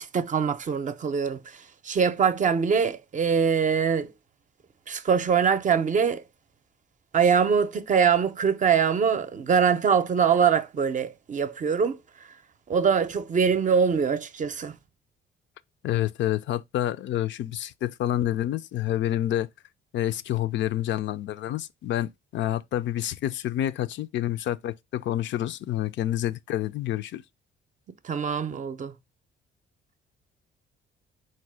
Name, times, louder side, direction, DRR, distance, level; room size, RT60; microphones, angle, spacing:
voice 1, 0.0-4.1 4.9-6.2 7.1-12.0 12.7-14.7 28.0-28.9, right 6 dB, 40° right, 0.5 m, -23 dB
voice 2, 15.8-19.5 19.9-27.2, left 12 dB, 65° left, 0.4 m, -28 dB
4.4 x 2.2 x 4.7 m
cardioid pair, 90°, 20 cm